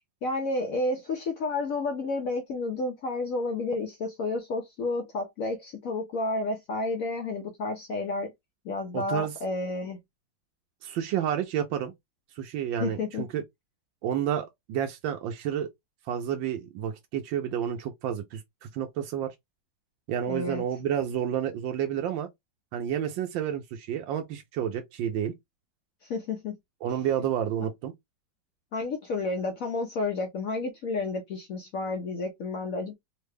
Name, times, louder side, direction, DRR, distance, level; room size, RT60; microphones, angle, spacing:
voice 1, 0.2-8.3 8.6-10.0 12.8-13.2 20.3-20.6 26.0-26.6 28.7-32.9, left 3 dB, 70° left, 0.8 m, -31 dB
voice 2, 8.9-9.3 10.8-11.9 12.4-13.4 14.0-15.7 16.1-19.3 20.1-22.3 22.7-25.3 26.8-27.9, right 9 dB, 90° right, 1.4 m, -30 dB
3.7 x 2.1 x 3.2 m
omnidirectional pair, 2.0 m